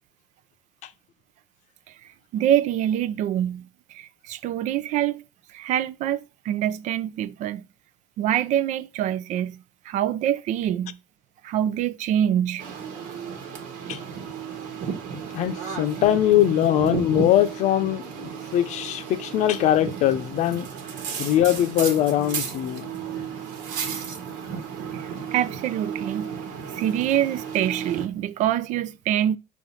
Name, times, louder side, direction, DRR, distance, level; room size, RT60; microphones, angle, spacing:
voice 1, 2.3-3.6 3.9-5.2 5.5-7.6 8.2-9.5 9.9-11.0 11.4-12.6 24.9-26.3 26.7-29.4, right 11 dB, 65° right, 0.6 m, -25 dB
sound 1, 12.6-28.1, right 7 dB, 80° right, 1.5 m, -34 dB
voice 2, 15.3-20.7 21.2-22.9, left 12 dB, 60° left, 0.7 m, -22 dB
6.3 x 3.9 x 5.7 m
cardioid pair, 130°, 14 cm